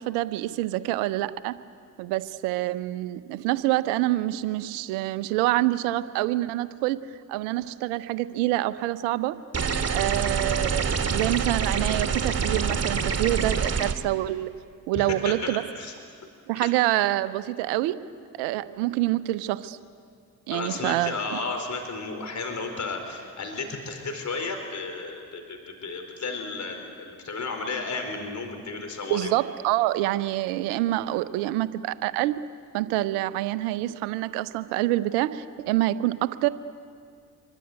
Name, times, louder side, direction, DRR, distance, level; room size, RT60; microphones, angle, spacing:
voice 1, 0.0-1.5 2.0-7.0 7.3-9.4 9.9-14.5 14.9-15.6 16.5-18.0 18.4-19.8 20.5-21.1 29.1-32.3 32.7-36.5, right 16 dB, 75° right, 14 dB, 1.0 m, -26 dB
sound 1, 9.5-13.9, right 6 dB, 35° right, 2.6 m, -26 dB
voice 2, 14.9-15.9 16.6-16.7 20.5-29.3, left 3 dB, 40° left, 4 dB, 4.9 m, -33 dB
26.0 x 24.0 x 9.4 m, 2.2 s
hypercardioid pair, 50°, 41 cm